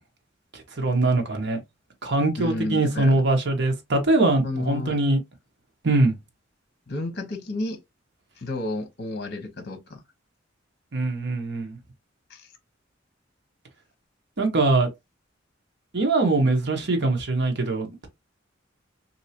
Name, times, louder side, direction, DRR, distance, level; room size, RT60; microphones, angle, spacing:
voice 1, 0.5-1.6 2.0-5.2 5.8-6.1 10.9-11.8 14.4-14.9 15.9-18.1, right 2 dB, 65° right, 1.0 m, -22 dB
voice 2, 2.4-3.2 4.4-5.0 6.9-7.8 8.4-10.0 12.3-12.5, left 2 dB, 55° left, 0.8 m, -31 dB
3.2 x 2.7 x 2.7 m
head